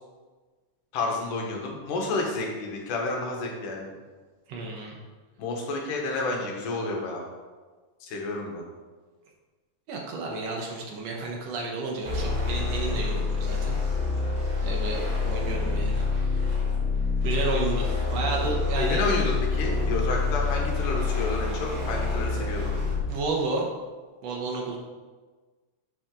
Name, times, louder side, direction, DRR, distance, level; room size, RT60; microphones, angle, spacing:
voice 1, 0.9-3.9 5.4-7.2 8.0-8.6 18.8-22.7, left 2 dB, 75° left, 0 dB, 2.8 m, -30 dB
voice 2, 4.5-5.0 9.9-13.8 14.6-16.0 16.3-16.4 17.2-19.1 23.1-23.7 24.2-24.8, right 3 dB, 65° right, -1 dB, 1.8 m, -31 dB
sound 1, 12.0-23.1, left 4 dB, 35° right, 3.0 m, -27 dB
7.2 x 6.0 x 3.8 m, 1.3 s
omnidirectional pair, 3.8 m